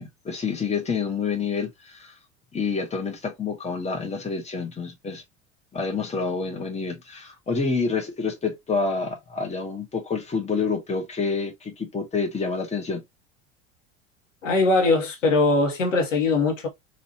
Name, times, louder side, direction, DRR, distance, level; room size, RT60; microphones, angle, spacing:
voice 1, 0.0-2.1 2.5-5.2 5.7-13.0, left 4 dB, 15° left, 1.4 m, -28 dB
voice 2, 14.4-16.7, left 3 dB, 80° left, 1.4 m, -21 dB
4.0 x 2.8 x 2.9 m
figure-of-eight pair, 80°, 38 cm